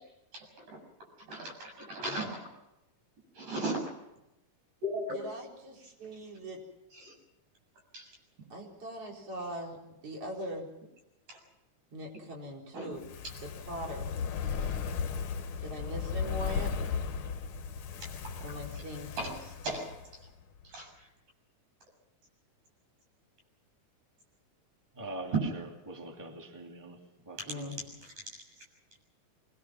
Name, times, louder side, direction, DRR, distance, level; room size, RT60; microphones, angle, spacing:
voice 1, 0.3-0.8 1.3-2.5 3.3-3.8 4.8-5.2 7.0-7.1 7.9-8.1 11.3-11.4 12.7-13.0 19.2-19.3 19.6-20.0 20.7-20.9, right 1 dB, 80° right, 1 dB, 8.9 m, -36 dB
voice 2, 5.1-6.6 8.5-10.7 11.9-13.0 13.4-14.1 15.6-16.9 18.4-19.4 27.5-27.8, equal, 45° right, -1 dB, 5.3 m, -41 dB
Fire, 12.9-20.3 20.6-20.7, left 6 dB, 60° left, 1.4 m, -36 dB
voice 3, 24.9-27.7, right 2 dB, 5° right, 1 dB, 2.2 m, -44 dB
25.5 x 20.5 x 6.2 m, 0.90 s
omnidirectional pair, 3.6 m